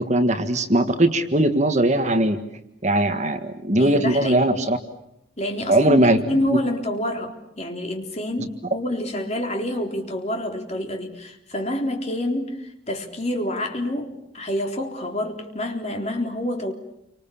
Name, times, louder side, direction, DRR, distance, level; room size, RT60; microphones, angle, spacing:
voice 1, 0.0-2.4 2.8-4.8 5.7-6.6, right 1 dB, 35° right, 8 dB, 1.6 m, -20 dB
voice 2, 3.8-4.6 5.4-16.7, left 1 dB, 30° left, 3 dB, 3.8 m, -27 dB
29.5 x 25.5 x 7.2 m, 0.82 s
head